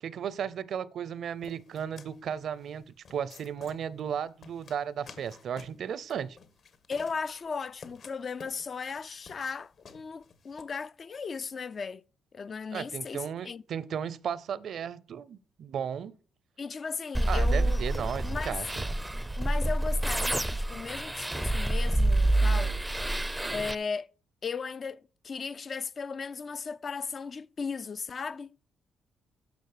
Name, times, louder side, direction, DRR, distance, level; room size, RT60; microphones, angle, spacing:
voice 1, 0.0-2.8 3.1-6.4 12.7-16.2 17.2-19.0, right 8 dB, 65° right, 0.6 m, -35 dB
sound 1, 1.4-10.6, left 5 dB, 60° left, 1.5 m, -52 dB
voice 2, 6.9-12.0 12.3-13.6 16.6-17.8 18.2-18.6 19.4-22.8 23.5-24.1 24.4-28.5, left 5 dB, 45° left, 0.4 m, -36 dB
sound 2, 17.1-23.7, right 1 dB, 10° right, 0.5 m, -27 dB
10.5 x 6.4 x 6.7 m
cardioid pair, 90°, 0 cm